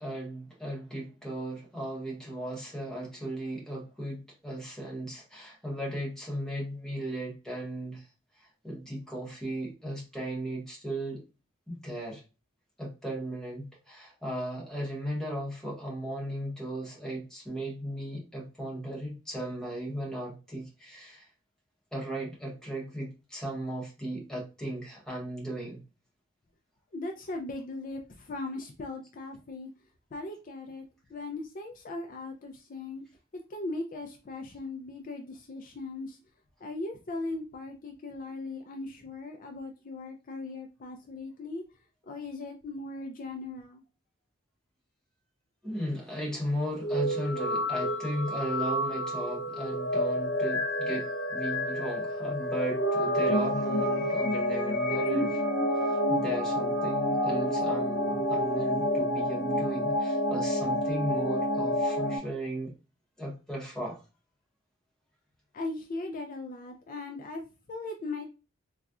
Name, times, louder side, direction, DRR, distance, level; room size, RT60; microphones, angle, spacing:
voice 1, 0.0-8.0 8.4-11.2 11.7-12.2 12.8-21.3 21.9-25.8 45.6-55.4 55.8-62.7 63.2-64.0, right 1 dB, 5° left, 1.1 m, -36 dB
voice 2, 26.9-29.7 30.1-30.8 31.1-33.0 33.5-36.2 36.6-41.6 42.1-43.8 65.5-67.4 67.7-68.2, left 2 dB, 45° left, 0.4 m, -38 dB
sound 1, 46.7-62.2, left 1 dB, 85° left, 0.7 m, -29 dB
sound 2, 52.6-59.2, right 3 dB, 65° left, 1.0 m, -35 dB
4.0 x 2.3 x 2.4 m
head